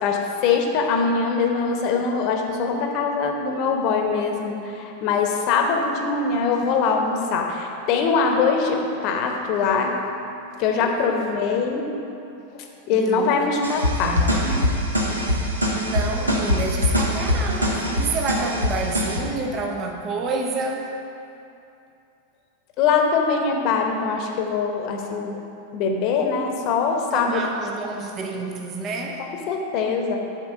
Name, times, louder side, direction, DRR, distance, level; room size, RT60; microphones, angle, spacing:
voice 1, 0.0-9.9 10.6-11.8 12.9-14.2 14.4-14.6 22.8-25.4 25.7-27.7 29.5-30.2, left 5 dB, 40° left, 2 dB, 0.9 m, -22 dB
voice 2, 10.7-11.5 12.9-13.6 14.0-14.6 15.7-20.9 27.1-29.3, right 3 dB, 30° right, 2 dB, 0.7 m, -29 dB
sound 1, 13.6-19.2, left 1 dB, 80° right, 1.1 m, -23 dB
8.4 x 4.4 x 6.3 m, 2.7 s
figure-of-eight pair, 90°, 0 cm